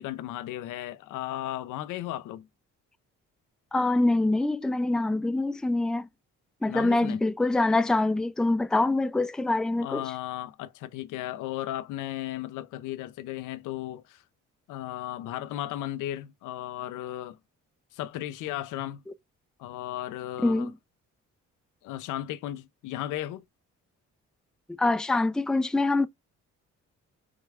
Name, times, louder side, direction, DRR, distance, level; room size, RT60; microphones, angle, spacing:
voice 1, 0.0-2.5 6.7-7.2 9.8-14.2 14.7-17.4 17.9-19.0 19.6-20.7 21.8-23.4, left 13 dB, 85° left, 0.5 m, -35 dB
voice 2, 3.7-6.1 6.6-10.0 20.4-20.7 24.8-26.1, left 2 dB, ahead, 0.4 m, -25 dB
4.9 x 2.2 x 4.7 m
cardioid pair, 90°, 30 cm